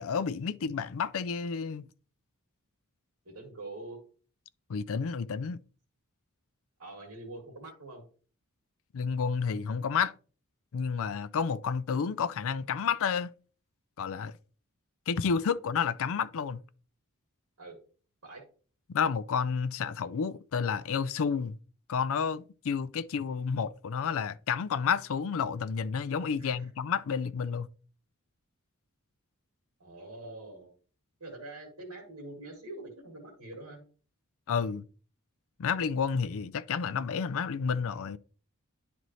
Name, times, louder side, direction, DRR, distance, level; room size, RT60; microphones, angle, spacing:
voice 1, 0.0-1.9 4.7-5.6 8.9-10.1 10.7-13.3 14.0-14.3 15.1-16.6 18.9-21.6 21.9-27.7 34.5-34.8 35.6-38.2, left 6 dB, 65° left, 0.4 m, -30 dB
voice 2, 3.3-4.0 6.8-8.0 17.6-17.8 18.2-18.4 26.4-26.7 29.8-30.7 31.2-33.8, right 2 dB, 75° right, 2.2 m, -44 dB
10.5 x 4.0 x 3.1 m
head